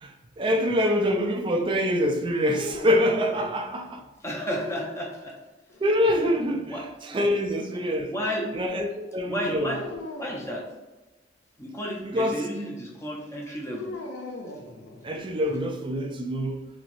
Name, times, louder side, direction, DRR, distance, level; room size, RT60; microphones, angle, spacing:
voice 1, 0.0-4.0 5.8-8.1 8.5-9.7 12.0-12.4 15.0-16.7, equal, 25° right, 0.3 m, -25 dB
sound 1, 2.5-4.1 5.7-6.8 9.7-10.5 13.7-15.4, left 2 dB, 90° left, 0.5 m, -40 dB
voice 2, 4.2-5.3 6.3-6.4 6.7-6.8 7.1-7.3 7.7-8.5 9.2-9.8 10.2-10.6 11.6-13.9, equal, 15° left, 0.6 m, -32 dB
3.0 x 2.9 x 2.6 m
head